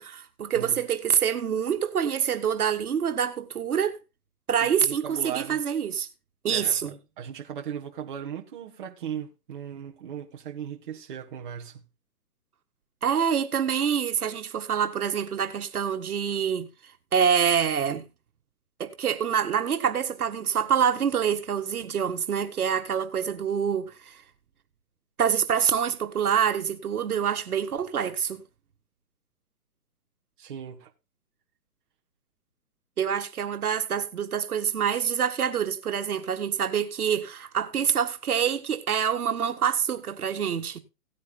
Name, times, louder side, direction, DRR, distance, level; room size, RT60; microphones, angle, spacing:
voice 1, 0.0-4.0 4.5-6.1 6.4-6.9 13.0-16.7 17.1-18.1 18.8-24.2 25.2-28.4 33.0-40.8, right 8 dB, 70° right, 1.8 m, -26 dB
voice 2, 4.6-5.6 6.5-11.8 30.4-30.9, right 9 dB, 35° right, 1.5 m, -37 dB
17.5 x 9.5 x 2.4 m
hypercardioid pair, 165°, 45 cm